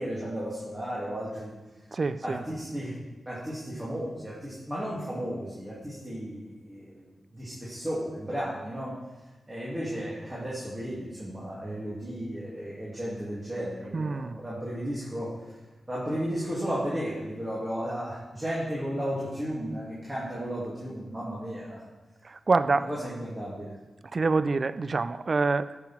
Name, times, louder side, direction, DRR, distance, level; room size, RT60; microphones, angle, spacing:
voice 1, 0.0-1.5 2.2-3.0 3.2-7.0 7.3-9.0 9.5-15.4 15.9-21.8 22.7-23.7, equal, 20° right, -8 dB, 2.6 m, -34 dB
voice 2, 1.9-2.4 13.9-14.4 22.2-22.9 24.1-25.8, right 3 dB, 50° right, 14 dB, 0.3 m, -26 dB
11.5 x 6.1 x 4.4 m, 1.1 s
cardioid pair, 65°, 0 cm